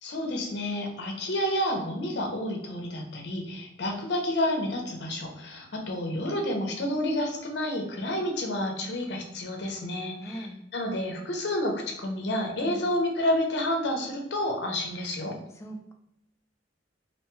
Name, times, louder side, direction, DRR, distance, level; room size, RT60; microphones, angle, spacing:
voice 1, 0.0-10.5 10.7-15.3, left 1 dB, 65° left, 2 dB, 0.6 m, -30 dB
voice 2, 10.2-10.6 12.5-12.9 15.6-15.9, right 1 dB, 15° left, 3 dB, 0.3 m, -40 dB
2.6 x 2.2 x 3.0 m, 0.81 s
head